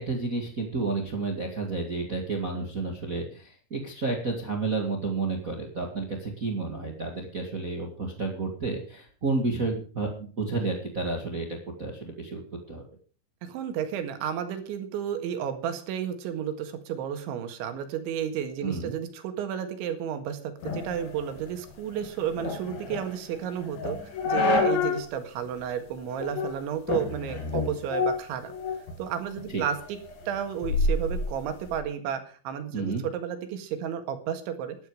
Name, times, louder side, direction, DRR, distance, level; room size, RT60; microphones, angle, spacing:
voice 1, 0.0-12.8 18.6-18.9 29.5-29.6 32.7-33.0, right 3 dB, 70° right, 2 dB, 0.8 m, -31 dB
voice 2, 13.4-24.0 24.3-28.5 29.0-30.0 30.3-34.8, right 8 dB, 90° right, 8 dB, 4.1 m, -32 dB
sound 1, 20.6-25.1 25.5-25.6 26.2-26.6 26.9-29.0 29.4-31.8, left 3 dB, 75° left, 4.7 m, -29 dB
13.0 x 11.5 x 4.9 m, 0.41 s
omnidirectional pair, 5.2 m